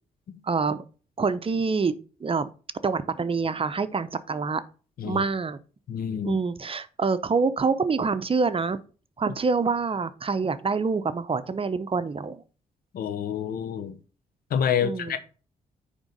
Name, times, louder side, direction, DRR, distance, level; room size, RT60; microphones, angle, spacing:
voice 1, 0.4-0.8 1.2-1.9 2.2-2.5 2.8-4.6 5.0-5.6 6.2-8.8 9.2-12.4 14.8-15.2, right 4 dB, 35° right, 0.7 m, -26 dB
voice 2, 5.9-6.4 12.9-14.0 14.5-15.2, left 8 dB, 70° left, 1.0 m, -28 dB
9.0 x 3.6 x 5.1 m
supercardioid pair, 50°, 16 cm